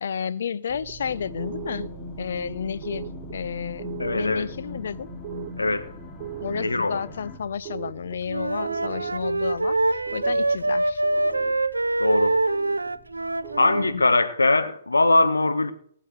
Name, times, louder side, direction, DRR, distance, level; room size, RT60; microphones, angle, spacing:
voice 1, 0.0-1.9 2.2-5.1 6.4-11.0 13.8-14.0, left 7 dB, 60° left, 0.8 m, -31 dB
sound 1, 0.7-14.1, right 11 dB, 35° right, 0.9 m, -41 dB
sound 2, 1.0-7.4, left 4 dB, 20° left, 2.9 m, -40 dB
voice 2, 4.0-4.5 5.6-5.9 6.6-7.0 12.0-12.4 13.6-15.7, left 2 dB, 85° left, 1.6 m, -21 dB
Wind instrument woodwind instrument, 8.2-13.9, right 2 dB, 85° right, 0.6 m, -24 dB
18.5 x 7.1 x 8.3 m
figure-of-eight pair, 125°, 0 cm